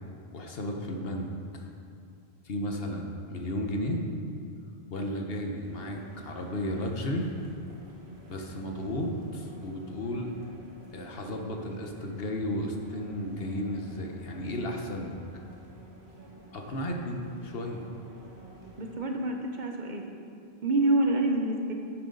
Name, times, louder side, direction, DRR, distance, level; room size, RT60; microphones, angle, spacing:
voice 1, 0.3-1.7 2.4-4.0 4.9-7.3 8.3-10.3 10.9-15.2 16.5-17.8, left 1 dB, 70° left, 2 dB, 1.2 m, -33 dB
sound 1, 5.5-18.9, right 2 dB, 80° right, 2.0 m, -50 dB
voice 2, 18.8-20.0 20.6-21.7, right 2 dB, 50° right, 2 dB, 1.0 m, -27 dB
10.5 x 9.4 x 3.9 m, 2.4 s
omnidirectional pair, 1.0 m